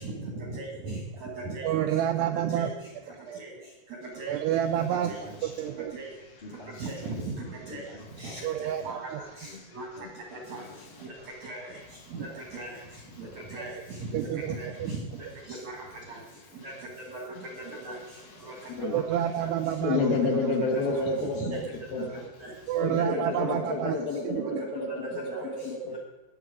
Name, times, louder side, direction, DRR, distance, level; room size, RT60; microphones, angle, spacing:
voice 1, 0.4-1.7 2.5-2.7 3.4-3.5 4.2-4.3 4.9-5.2 5.9-6.1 6.8-7.2 7.7-7.8 8.2-9.0 9.4-9.9 10.5-10.6 11.0-11.1 11.4-11.6 12.1-12.3 12.5-12.7 13.5-13.7 14.1-14.3 14.6-15.0 15.6-15.7 16.1-16.2 16.6-16.7 17.1-17.2 17.8-17.9 18.9-19.5 20.6-20.7 20.9-21.0 21.4-21.6 22.0-22.1 22.4-22.5 22.9-23.0 25.0-25.4 25.9-26.0, right 3 dB, 65° right, 0 dB, 1.7 m, -38 dB
voice 2, 1.6-2.7 3.3-3.4 4.3-5.1 5.4-5.9 8.4-9.2 12.2-12.3 14.1-14.9 18.8-20.0 22.7-24.0 24.2-24.6, right 10 dB, 90° right, 6 dB, 2.4 m, -28 dB
Male speech man speaking, 4.0-23.0, left 3 dB, 85° left, 5.3 m, -54 dB
voice 3, 5.0-5.7 6.4-7.1 7.7-8.4 8.8-8.9 9.4-9.6 10.0-10.8 15.4-15.6, left 2 dB, 45° left, -2 dB, 0.6 m, -46 dB
voice 4, 19.8-21.6 21.9-22.2 22.8-26.0, left 3 dB, 65° left, 1 dB, 2.5 m, -29 dB
19.5 x 7.2 x 4.9 m, 1.1 s
omnidirectional pair, 5.3 m